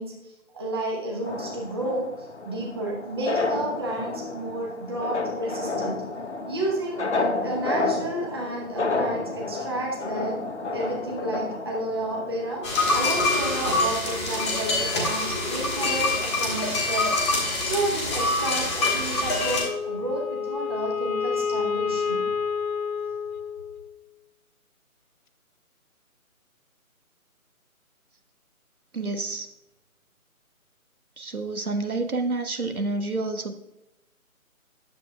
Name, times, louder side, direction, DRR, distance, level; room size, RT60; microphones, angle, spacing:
voice 1, 0.0-2.1 2.4-6.0 6.4-7.1 7.4-10.4 10.7-12.7 12.9-17.2 17.6-22.3, right 1 dB, 15° right, -2 dB, 1.0 m, -31 dB
sound 1, 1.2-13.0, left 3 dB, 55° left, 0.9 m, -31 dB
sound 2, 12.6-19.6, left 2 dB, 20° left, 1.3 m, -25 dB
Wind instrument woodwind instrument, 19.6-24.0, left 6 dB, 75° left, 0.6 m, -29 dB
voice 2, 28.9-29.5 31.2-33.6, right 3 dB, 80° right, 7 dB, 1.2 m, -29 dB
10.0 x 7.4 x 2.2 m, 0.92 s
figure-of-eight pair, 150°, 43 cm